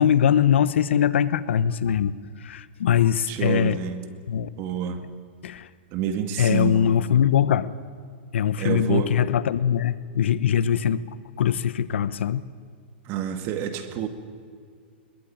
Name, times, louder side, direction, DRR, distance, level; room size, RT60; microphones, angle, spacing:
voice 1, 0.0-3.8 4.3-4.5 5.4-5.7 6.4-7.7 8.3-11.0 11.4-12.4, left 9 dB, 80° left, 16 dB, 1.0 m, -22 dB
voice 2, 3.3-4.0 4.6-5.0 5.9-7.0 8.6-9.1 13.1-14.1, right 9 dB, 40° right, 8 dB, 2.2 m, -28 dB
22.5 x 21.5 x 8.9 m, 2.1 s
hypercardioid pair, 140°, 6 cm